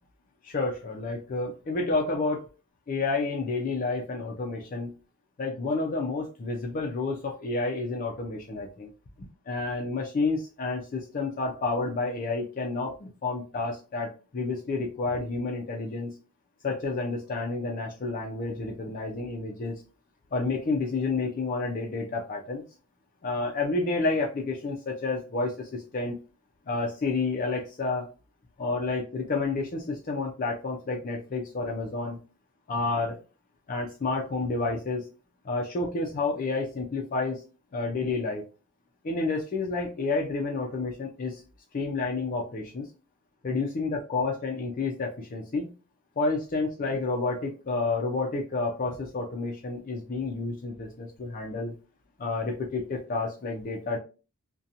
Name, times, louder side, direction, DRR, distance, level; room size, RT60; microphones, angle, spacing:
voice 1, 0.4-2.4 2.9-4.9 5.4-8.9 9.5-16.1 16.6-19.8 20.3-22.6 23.2-26.2 26.7-28.1 28.6-32.2 32.7-33.2 33.7-35.1 35.4-37.4 37.7-38.4 39.0-41.4 41.7-42.9 43.4-45.7 46.2-51.7 52.2-54.0, left 3 dB, 40° left, 0 dB, 0.4 m, -30 dB
2.7 x 2.2 x 2.5 m, 0.33 s
head